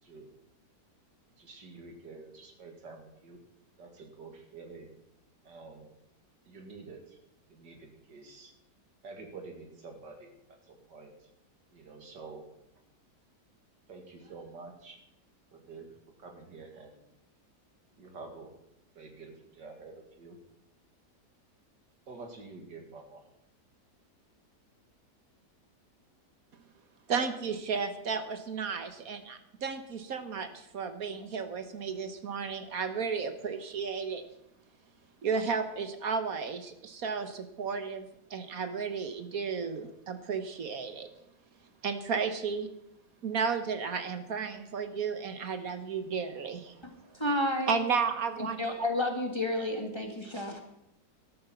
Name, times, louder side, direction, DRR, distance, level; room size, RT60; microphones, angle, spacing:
voice 1, 1.4-3.4 3.8-4.9 5.4-5.9 6.5-7.2 7.5-8.5 9.0-10.3 10.6-11.3 11.7-12.4 13.9-15.0 15.5-15.9 16.2-17.0 18.0-18.5 18.9-20.4 22.1-23.2, right 3 dB, 90° right, 3 dB, 2.8 m, -48 dB
voice 2, 27.1-34.2 35.2-41.1 41.8-42.7 43.2-46.8 47.7-48.6, right 5 dB, 55° right, 9 dB, 1.6 m, -33 dB
voice 3, 47.1-47.8 48.6-50.6, left 1 dB, 15° left, 3 dB, 1.6 m, -31 dB
13.0 x 13.0 x 5.7 m, 0.82 s
omnidirectional pair, 1.8 m